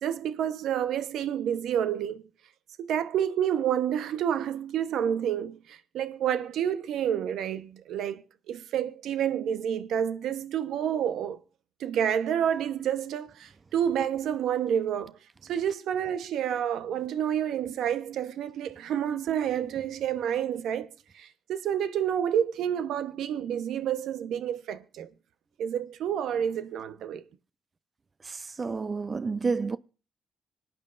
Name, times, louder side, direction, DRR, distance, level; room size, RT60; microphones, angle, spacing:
voice 1, 0.0-2.2 2.9-8.2 8.5-11.4 11.8-15.1 15.5-20.9 21.2-25.1 25.6-27.2, right 9 dB, 80° right, 0.9 m, -29 dB
voice 2, 28.2-29.8, right 4 dB, 30° right, 0.5 m, -30 dB
25.5 x 8.9 x 2.5 m
cardioid pair, 90°, 0 cm